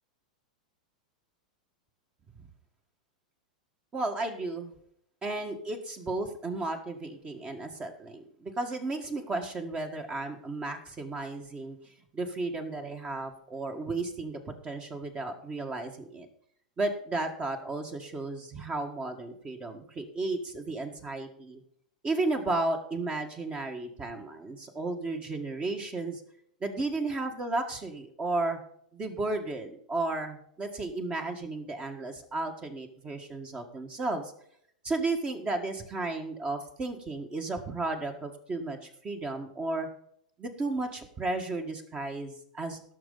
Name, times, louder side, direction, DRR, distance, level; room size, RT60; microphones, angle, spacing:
voice 1, 3.9-4.7 5.2-11.8 12.1-16.3 16.8-21.6 22.0-26.2 26.6-28.6 28.9-34.3 34.8-39.9 40.4-42.8, right 2 dB, 25° right, 5 dB, 1.6 m, -33 dB
17.5 x 6.4 x 4.0 m, 0.70 s
hypercardioid pair, 105°, 4 cm